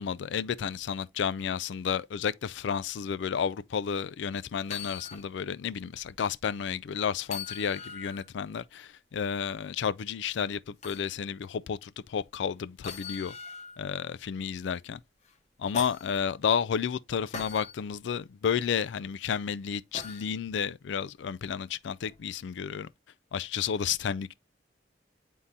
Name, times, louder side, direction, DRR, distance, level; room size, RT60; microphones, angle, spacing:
voice 1, 0.0-13.3 13.8-15.0 15.6-22.9 23.3-24.3, left 7 dB, 85° left, 0.4 m, -31 dB
sound 1, 4.6-5.3 5.7-5.8 7.2-8.3 10.8-11.1 12.8-13.8 15.3-16.2 17.3-17.8 19.9-20.3 22.1-22.2, left 5 dB, 40° left, 0.8 m, -41 dB
9.5 x 3.7 x 2.7 m
head